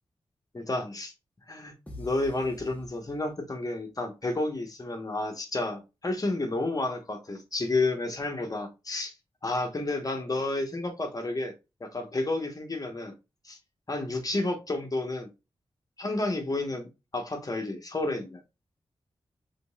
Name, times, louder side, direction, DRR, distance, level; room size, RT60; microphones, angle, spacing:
voice 1, 0.5-1.1 1.5-9.1 9.4-11.5 11.8-13.1 13.4-13.6 13.9-15.3 16.0-16.9 17.1-18.4, left 2 dB, 35° left, 1.2 m, -31 dB
sound 1, 1.9-3.7, left 2 dB, 15° left, 1.4 m, -47 dB
3.7 x 3.7 x 2.4 m
cardioid pair, 45°, 10 cm